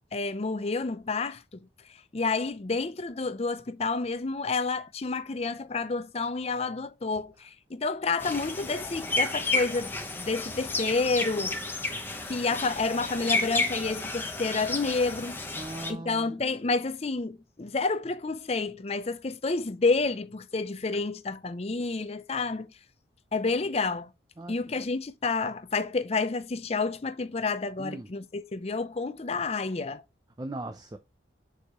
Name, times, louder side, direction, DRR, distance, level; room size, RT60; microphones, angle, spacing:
voice 1, 0.1-1.6 2.1-11.6 12.3-15.4 15.9-22.7 23.3-24.1 24.5-30.0, left 3 dB, 35° left, 0.5 m, -29 dB
sound 1, 8.2-15.9, left 3 dB, 10° left, 0.9 m, -32 dB
voice 2, 15.6-16.4 24.4-24.6 27.8-28.1 30.4-31.0, right 2 dB, 20° right, 0.5 m, -38 dB
6.9 x 4.9 x 2.9 m
head